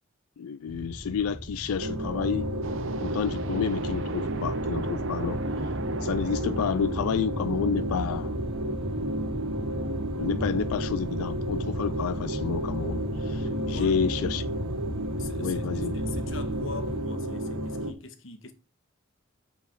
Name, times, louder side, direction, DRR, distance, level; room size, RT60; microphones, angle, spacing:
voice 1, 0.4-2.5 3.0-5.7 6.0-8.3 10.1-14.5 15.4-15.9, left 7 dB, 85° left, 0.4 m, -30 dB
sound 1, 0.7-17.0, right 1 dB, 25° right, 1.0 m, -37 dB
sound 2, 1.8-17.9, right 1 dB, 90° right, 1.6 m, -32 dB
sound 3, 2.6-8.3, right 3 dB, 60° right, 0.8 m, -38 dB
voice 2, 13.4-14.3 15.2-18.5, left 3 dB, 60° left, 1.3 m, -42 dB
8.0 x 6.9 x 4.6 m
head